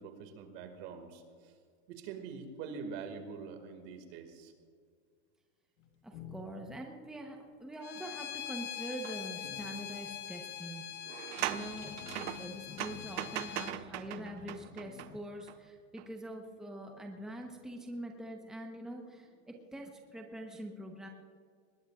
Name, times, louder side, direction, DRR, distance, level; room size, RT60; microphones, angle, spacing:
voice 1, 0.0-1.5 1.9-4.5, right 5 dB, 55° right, 6 dB, 2.2 m, -44 dB
sound 1, 5.8-7.0 8.0-8.3 8.7-15.2, left 6 dB, 90° left, 1.7 m, -51 dB
voice 2, 6.0-11.0 11.5-21.1, right 1 dB, ahead, 1 dB, 1.0 m, -44 dB
Bowed string instrument, 7.8-13.7, left 11 dB, 30° left, 0.7 m, -43 dB
sound 2, 9.0-9.2 9.6-9.7 11.0-15.6 16.0-16.1, right 14 dB, 75° right, 0.8 m, -40 dB
20.5 x 20.0 x 2.5 m, 2.1 s
supercardioid pair, 150°, 36 cm